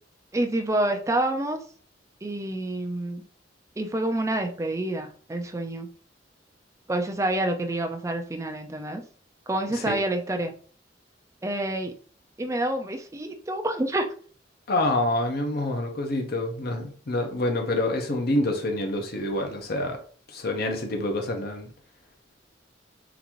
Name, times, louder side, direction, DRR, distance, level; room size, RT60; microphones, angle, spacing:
voice 1, 0.3-1.6 2.2-3.2 3.8-5.9 6.9-9.0 9.5-10.5 11.4-11.9 12.4-14.1, right 1 dB, 15° right, 5 dB, 0.4 m, -28 dB
voice 2, 14.7-20.0 20.3-21.7, left 1 dB, 55° left, 3 dB, 0.8 m, -27 dB
3.9 x 2.6 x 2.9 m, 0.43 s
head